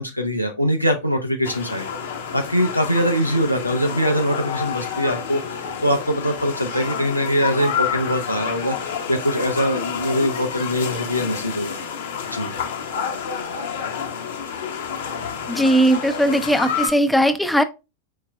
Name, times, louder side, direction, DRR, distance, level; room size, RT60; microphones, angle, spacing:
voice 1, 0.0-1.9 2.3-8.8 9.1-11.8 12.3-12.5, equal, 90° left, 0.5 m, -22 dB
sound 1, 1.4-16.9, left 7 dB, 60° left, 0.8 m, -29 dB
voice 2, 15.5-17.6, equal, 5° left, 0.5 m, -18 dB
4.7 x 4.5 x 2.2 m
figure-of-eight pair, 90°, 0 cm